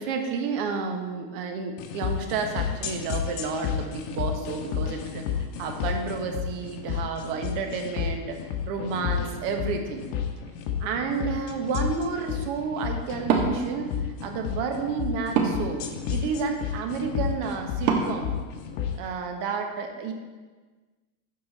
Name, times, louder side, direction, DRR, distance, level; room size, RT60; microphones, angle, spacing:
voice 1, 0.0-8.4 8.7-10.1 10.8-18.3 19.0-20.1, right 5 dB, 55° right, 4 dB, 1.3 m, -31 dB
sound 1, 1.8-18.9, left 8 dB, 60° left, 1.3 m, -31 dB
Wood, 13.2-19.2, right 5 dB, 90° right, 1.4 m, -31 dB
12.0 x 4.5 x 4.2 m, 1.4 s
supercardioid pair, 135°, 43 cm